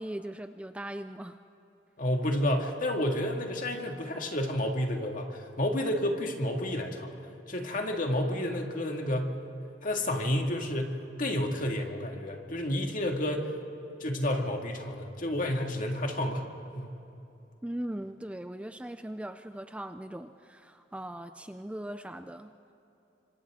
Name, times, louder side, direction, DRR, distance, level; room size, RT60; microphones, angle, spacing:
voice 1, 0.0-1.4 17.6-22.5, right 1 dB, 5° right, 9 dB, 0.4 m, -39 dB
voice 2, 2.0-7.1 7.5-9.4 9.8-13.5 14.0-16.5 16.7-17.0, left 1 dB, 50° left, 2 dB, 2.1 m, -30 dB
29.5 x 25.5 x 3.7 m, 2.9 s
head